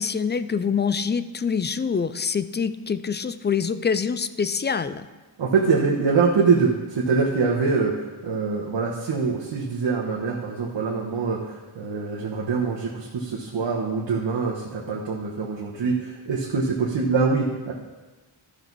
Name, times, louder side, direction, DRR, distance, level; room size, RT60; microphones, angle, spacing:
voice 1, 0.0-5.1, left 6 dB, 25° left, 13 dB, 0.3 m, -25 dB
voice 2, 5.4-17.7, right 4 dB, 60° right, -4 dB, 1.3 m, -24 dB
13.0 x 6.2 x 4.1 m, 1.3 s
cardioid pair, 85°, 49 cm